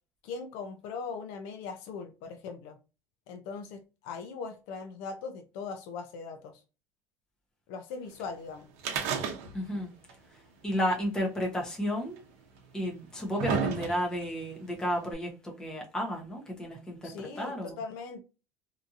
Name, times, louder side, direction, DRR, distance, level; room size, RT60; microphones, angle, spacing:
voice 1, 0.2-2.8 3.3-6.6 7.7-8.7 17.0-18.2, left 5 dB, 60° left, 0.4 m, -40 dB
sound 1, 8.8-9.8 10.1-10.2 11.2-11.3 12.2-12.3 12.9-14.3 15.1-15.2, right 6 dB, 80° right, 0.7 m, -32 dB
voice 2, 9.5-9.9 10.6-12.2 12.7-17.7, equal, 10° left, 0.7 m, -32 dB
2.8 x 2.5 x 2.4 m
cardioid pair, 175°, 8 cm